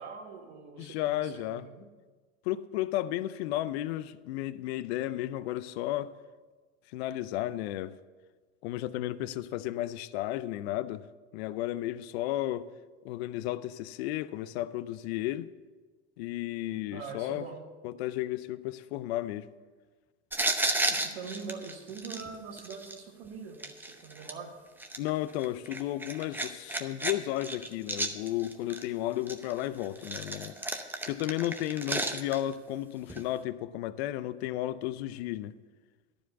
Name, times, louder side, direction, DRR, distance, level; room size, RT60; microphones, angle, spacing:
voice 1, 0.0-1.9 16.9-17.6 20.9-24.5, right 5 dB, 70° right, 1.6 m, -43 dB
voice 2, 0.8-1.7 2.4-6.1 6.9-7.9 8.6-11.1 11.3-12.7 13.0-15.5 16.2-17.5 17.8-19.5 25.0-30.5 31.1-35.6, left 14 dB, 65° left, 0.6 m, -33 dB
sound 1, 20.3-23.0 23.6-24.3 24.8-27.1 27.4-28.9 29.3-32.5 33.1-33.2, right 2 dB, 5° right, 0.7 m, -33 dB
11.5 x 5.0 x 8.0 m
hypercardioid pair, 100°, 34 cm